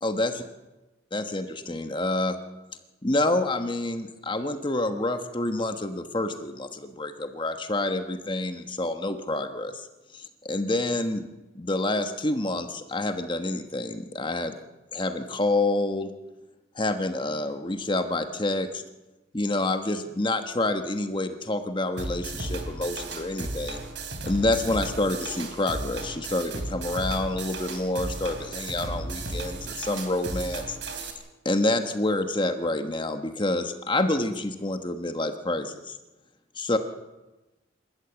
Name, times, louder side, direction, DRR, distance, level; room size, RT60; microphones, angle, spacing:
voice 1, 0.0-0.4 1.1-2.4 3.0-9.8 10.1-11.3 11.5-14.6 14.9-16.1 16.7-18.8 19.3-23.8 24.2-31.1 31.4-36.0 36.6-36.8, left 2 dB, 25° left, 7 dB, 1.3 m, -28 dB
sound 1, 22.0-31.1, right 2 dB, 70° right, 3.1 m, -35 dB
27.0 x 14.0 x 8.1 m, 1.1 s
head